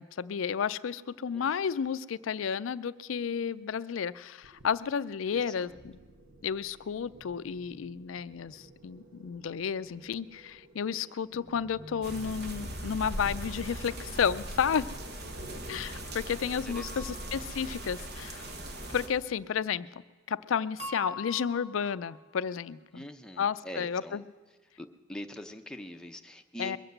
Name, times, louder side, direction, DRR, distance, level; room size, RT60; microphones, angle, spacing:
voice 1, 0.0-6.0 6.4-14.9 15.7-18.5 18.9-19.9 20.3-23.1 23.4-24.2 26.6-26.8, left 7 dB, 80° left, 16 dB, 0.4 m, -32 dB
sound 1, 4.4-16.7, right 1 dB, 85° right, 1.3 m, -56 dB
voice 2, 5.3-5.8 11.0-11.1 15.5-15.6 16.7-17.3 17.6-17.7 22.9-24.2 24.8-26.8, equal, 5° left, 4 dB, 0.7 m, -44 dB
sound 2, 12.0-19.1, right 1 dB, 55° right, 1.4 m, -40 dB
sound 3, 16.7-17.8 20.8-22.2, left 1 dB, 35° right, 2.5 m, -43 dB
22.0 x 7.9 x 7.9 m, 1.3 s
head